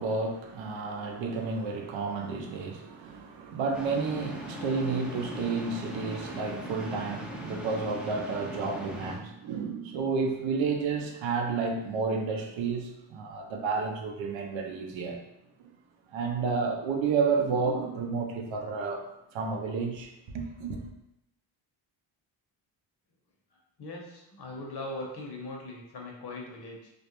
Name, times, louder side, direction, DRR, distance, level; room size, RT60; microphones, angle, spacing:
voice 1, 0.0-15.2 15.6-15.7 16.1-20.8, right 4 dB, 80° right, 0.6 m, -31 dB
sound 1, 3.7-9.2, equal, ahead, 0.4 m, -39 dB
voice 2, 23.5-26.9, left 2 dB, 60° left, 0.8 m, -40 dB
2.4 x 2.0 x 2.9 m
cardioid pair, 60°, 46 cm